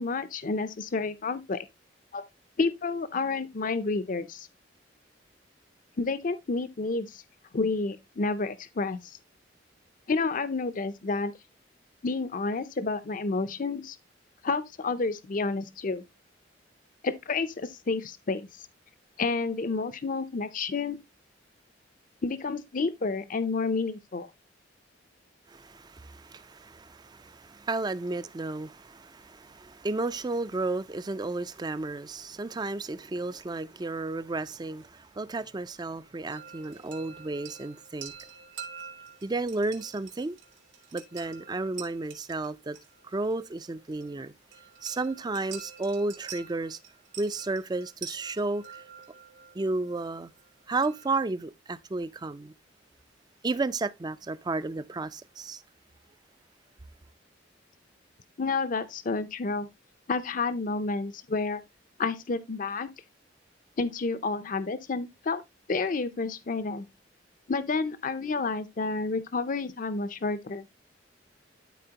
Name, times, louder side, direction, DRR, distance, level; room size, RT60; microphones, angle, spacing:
voice 1, 0.0-1.7 2.1-2.2 2.6-4.5 6.0-7.2 7.5-9.2 10.1-11.3 12.0-14.0 14.4-16.0 17.0-18.5 19.2-21.0 22.2-24.3 58.4-59.7 60.1-61.6 62.0-62.9 63.8-65.4 65.7-66.9 67.5-70.6, left 3 dB, 45° left, 0.5 m, -30 dB
voice 2, 25.5-38.1 39.2-40.4 40.9-42.8 43.0-44.3 44.8-46.8 47.2-48.6 49.5-50.3 50.7-52.5 53.4-55.6, right 3 dB, 20° right, 0.4 m, -32 dB
sound 1, 36.3-51.2, right 7 dB, 85° right, 2.6 m, -47 dB
12.5 x 4.3 x 2.8 m
head